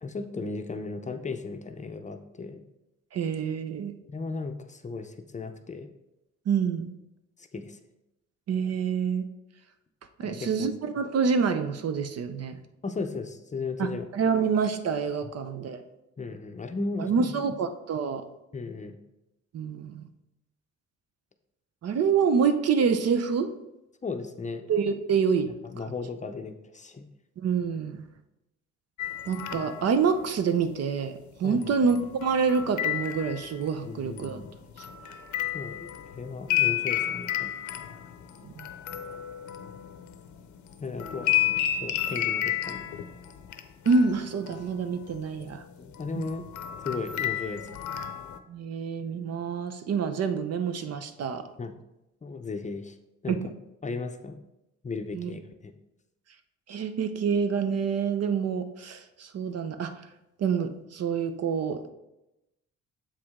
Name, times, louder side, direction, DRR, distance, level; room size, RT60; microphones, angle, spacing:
voice 1, 0.0-2.6 4.1-5.9 7.5-7.8 10.2-10.7 12.8-14.0 15.2-15.3 16.2-17.3 18.5-19.0 24.0-24.7 25.7-27.1 31.4-31.7 33.8-34.5 35.5-37.5 40.8-41.4 41.8-42.9 45.8-46.5 46.7-47.7 51.6-51.7 52.2-53.0 53.2-53.4 53.8-54.4 54.8-55.7, left 4 dB, 25° left, 6 dB, 0.6 m, -36 dB
voice 2, 3.1-3.9 6.5-6.9 8.5-9.3 10.2-12.6 13.8-15.8 17.0-18.2 19.5-20.1 21.8-23.5 24.7-25.5 27.4-28.1 29.3-34.4 38.4-38.7 43.9-45.6 46.1-46.3 48.5-51.5 53.3-53.4 55.1-55.3 56.7-60.0 60.4-61.9, right 6 dB, 55° right, 9 dB, 0.7 m, -27 dB
sound 1, 29.0-30.0 31.6-33.7 34.2-40.4 40.7-43.6 43.9-44.8 45.1-45.4 45.9-48.4, left 12 dB, 75° left, 0.6 m, -31 dB
7.3 x 4.9 x 3.6 m, 0.91 s
cardioid pair, 90°, 30 cm